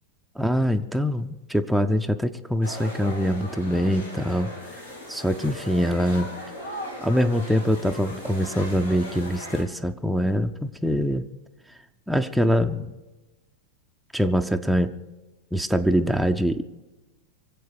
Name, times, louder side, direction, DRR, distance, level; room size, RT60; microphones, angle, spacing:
voice 1, 0.4-6.3 7.0-11.2 12.1-12.9 14.1-14.9 15.5-16.6, equal, ahead, 5 dB, 0.7 m, -24 dB
sound 1, 2.6-9.6, left 1 dB, 80° left, 3.4 m, -38 dB
24.0 x 8.3 x 6.6 m, 1.1 s
figure-of-eight pair, 90°, 0 cm